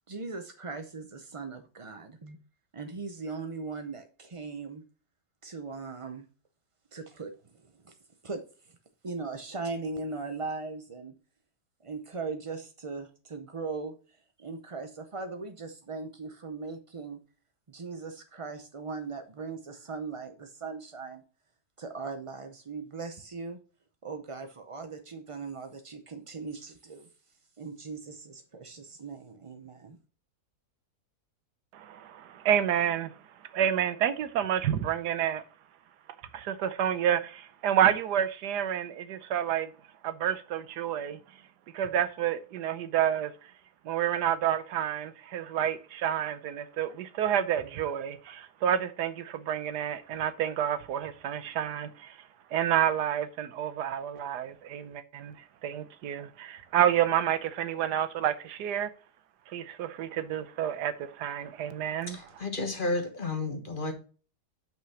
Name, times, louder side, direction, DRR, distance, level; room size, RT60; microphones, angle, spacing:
voice 1, 0.1-2.4 2.7-4.8 5.4-6.3 6.9-8.0 8.2-8.8 9.0-11.1 11.8-13.9 14.4-17.2 17.7-21.2 21.8-23.6 24.0-27.1 27.6-30.0, right 4 dB, 55° right, 0.3 m, -39 dB
voice 2, 31.7-33.2 33.5-35.4 36.3-39.7 40.0-41.2 41.7-43.5 43.8-58.9 59.5-62.2, right 10 dB, 80° right, 1.3 m, -29 dB
voice 3, 62.1-63.9, left 2 dB, 35° left, 1.3 m, -32 dB
6.0 x 5.8 x 5.6 m
omnidirectional pair, 1.7 m